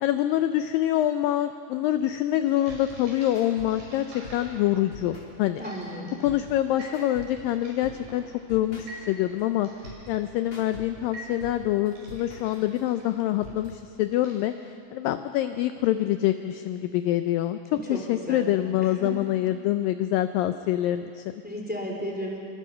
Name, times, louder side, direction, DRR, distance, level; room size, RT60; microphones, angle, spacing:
voice 1, 0.0-5.6 6.2-8.2 8.5-9.7 10.1-17.6 17.9-21.2, left 13 dB, 80° left, 9 dB, 2.1 m, -25 dB
sound 1, 2.5-14.8, equal, 70° right, 7.3 m, -48 dB
sound 2, 2.6-13.8, left 1 dB, 25° left, 3.7 m, -46 dB
voice 2, 5.6-6.2 17.7-18.4 18.8-19.2 21.4-22.4, equal, ahead, 0 dB, 3.1 m, -34 dB
27.5 x 24.5 x 5.7 m, 2.5 s
omnidirectional pair, 4.5 m